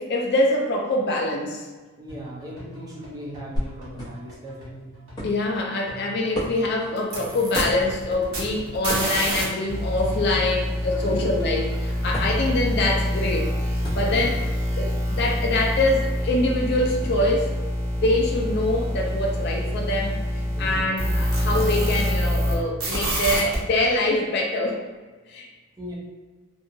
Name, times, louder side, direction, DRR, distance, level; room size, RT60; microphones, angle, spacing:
voice 1, 0.0-1.7 5.2-13.5 13.9-14.4 14.8-17.5 18.0-20.2 20.6-24.8 25.3-25.5, left 2 dB, 50° left, 0 dB, 0.3 m, -24 dB
voice 2, 2.0-4.7 11.0-11.3 14.0-14.3 20.5-20.9 25.8-25.9, equal, 15° right, -5 dB, 0.5 m, -38 dB
sound 1, 2.1-12.1, right 1 dB, 85° right, 1.3 m, -44 dB
sound 2, 3.6-21.3, equal, 20° left, 0.8 m, -39 dB
sound 3, 7.0-9.4 9.7-22.5 22.8-23.6, equal, 70° right, 0.8 m, -26 dB
2.7 x 2.3 x 2.6 m, 1.3 s
head